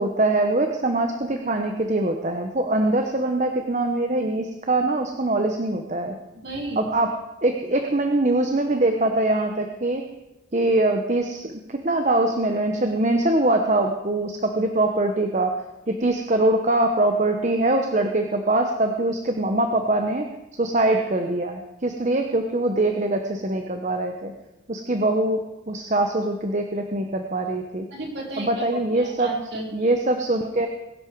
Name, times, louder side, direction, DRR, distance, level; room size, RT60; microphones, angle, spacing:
voice 1, 0.0-6.2 6.8-7.1 7.4-10.0 10.5-15.5 15.9-20.3 20.6-24.3 24.7-27.9 28.4-29.3 29.7-30.7, right 2 dB, 35° right, 4 dB, 1.0 m, -23 dB
voice 2, 6.3-6.9 27.9-29.9, right 1 dB, 55° right, -3 dB, 4.6 m, -34 dB
21.5 x 11.0 x 4.7 m, 1.0 s
head